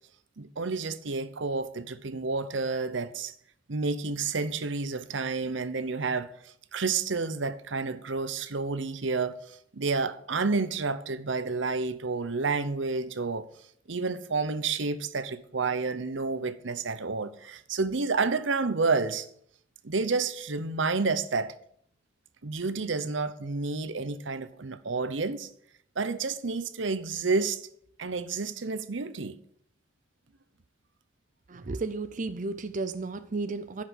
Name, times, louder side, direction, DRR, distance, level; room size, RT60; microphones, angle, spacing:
voice 1, 0.4-3.3 3.7-13.5 13.9-19.3 19.8-21.5 22.4-25.5 26.0-27.6 28.0-29.4, right 4 dB, 70° right, 0.9 m, -30 dB
voice 2, 31.5-33.8, right 3 dB, 40° right, 0.6 m, -33 dB
11.0 x 5.8 x 8.3 m
head